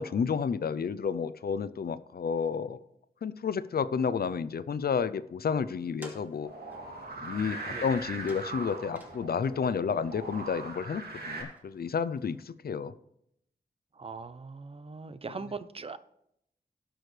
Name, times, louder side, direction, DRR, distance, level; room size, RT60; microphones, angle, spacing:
voice 1, 0.0-2.8 3.2-6.5 7.2-12.9, left 6 dB, 65° left, 14 dB, 0.5 m, -31 dB
sound 1, 5.8-12.5, equal, 10° right, 2.3 m, -55 dB
sound 2, 6.4-11.4, right 2 dB, 65° right, 2.5 m, -40 dB
voice 2, 13.9-16.0, right 4 dB, 35° right, 13 dB, 0.6 m, -40 dB
18.5 x 6.3 x 3.3 m, 0.77 s
wide cardioid pair, 105°, 17 cm